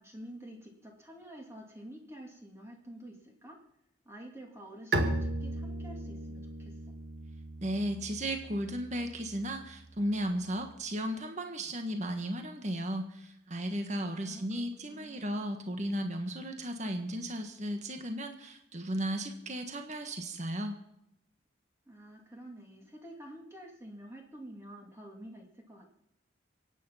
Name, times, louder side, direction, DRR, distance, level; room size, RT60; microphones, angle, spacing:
voice 1, 0.0-3.6 4.0-6.8 14.0-15.4 21.9-26.0, right 1 dB, 15° right, 1 dB, 2.3 m, -49 dB
Bowed string instrument, 4.9-10.5, right 2 dB, 60° right, 2.0 m, -37 dB
voice 2, 7.6-20.8, equal, 40° right, 5 dB, 1.6 m, -35 dB
24.0 x 9.6 x 5.8 m, 0.81 s
head